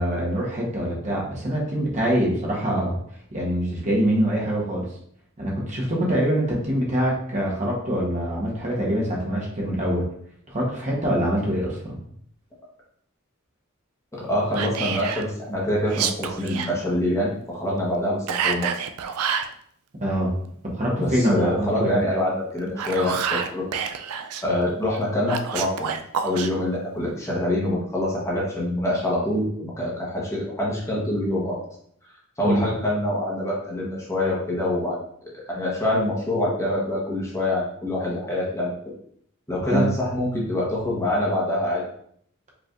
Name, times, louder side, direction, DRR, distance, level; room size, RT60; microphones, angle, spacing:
voice 1, 0.0-3.0 3.3-4.9 5.4-10.1 10.5-12.0 20.0-20.3 20.7-22.0 32.4-32.6 39.7-39.9, equal, 35° right, -3 dB, 1.0 m, -24 dB
voice 2, 14.1-18.8 21.0-23.7 24.4-25.9 26.2-31.6 32.4-35.0 35.3-38.7 39.5-41.8, left 1 dB, 15° left, -5 dB, 1.0 m, -25 dB
Whispering, 14.5-15.3 15.9-16.7 18.3-19.5 22.6-24.4 25.3-26.5, right 7 dB, 85° right, 0.4 m, -28 dB
4.9 x 3.2 x 2.5 m, 0.65 s
head